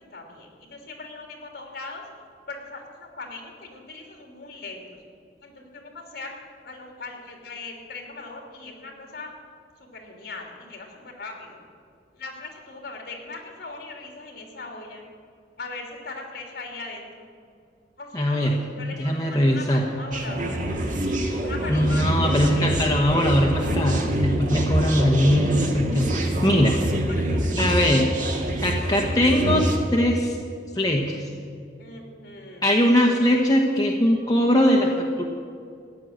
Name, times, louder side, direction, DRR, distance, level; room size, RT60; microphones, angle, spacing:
voice 1, 0.1-2.0 2.5-5.0 5.4-9.3 9.8-11.6 12.1-15.0 15.6-17.3 18.0-20.7 21.4-22.8 27.1-27.8 31.8-32.7, left 3 dB, 60° left, 2 dB, 3.0 m, -39 dB
voice 2, 18.1-18.5 19.0-19.8 21.7-26.8 27.6-28.1 28.6-30.4 30.7-31.3 32.6-35.3, equal, 20° left, 0 dB, 1.1 m, -21 dB
sound 1, 20.1-29.8, right 1 dB, 45° right, 1.8 m, -25 dB
15.0 x 10.0 x 7.9 m, 2.3 s
head